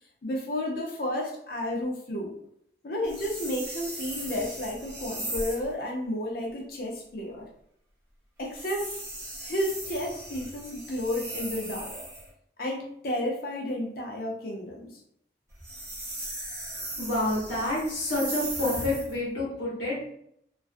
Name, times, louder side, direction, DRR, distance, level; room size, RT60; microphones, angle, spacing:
voice 1, 0.2-2.3 2.8-7.5 8.4-8.9 9.4-11.9 12.6-15.0, left 1 dB, 55° left, 0 dB, 0.6 m, -32 dB
sound 1, 3.0-5.7 8.4-12.3 15.5-19.2, right 1 dB, 15° right, 0.7 m, -38 dB
voice 2, 17.0-20.1, left 1 dB, 75° left, -5 dB, 1.0 m, -28 dB
2.4 x 2.2 x 2.4 m, 0.71 s
head